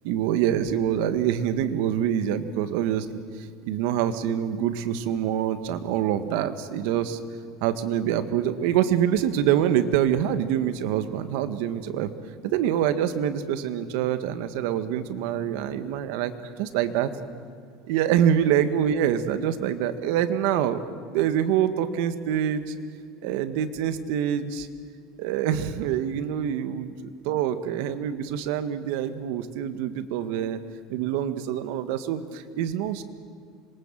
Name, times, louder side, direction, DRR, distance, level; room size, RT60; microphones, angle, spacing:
voice 1, 0.0-7.2 7.6-12.1 12.4-16.3 16.6-17.1 17.9-20.8 21.1-22.7 23.2-24.7 25.2-26.9 27.2-30.6 30.9-33.0, right 10 dB, 65° right, 10 dB, 1.7 m, -25 dB
26.5 x 23.0 x 7.6 m, 2.2 s
cardioid pair, 170°, 0 cm